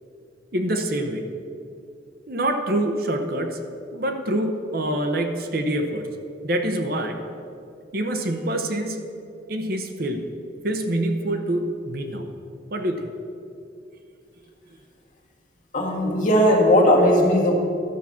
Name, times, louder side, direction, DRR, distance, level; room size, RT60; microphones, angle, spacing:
voice 1, 0.5-1.3 2.3-3.6 3.9-6.1 6.4-7.2 7.9-9.0 9.5-10.3 10.6-12.3 12.7-13.1, right 1 dB, 50° right, 5 dB, 0.8 m, -25 dB
voice 2, 15.7-17.5, equal, 40° left, -1 dB, 1.8 m, -17 dB
12.0 x 5.9 x 7.1 m, 2.5 s
head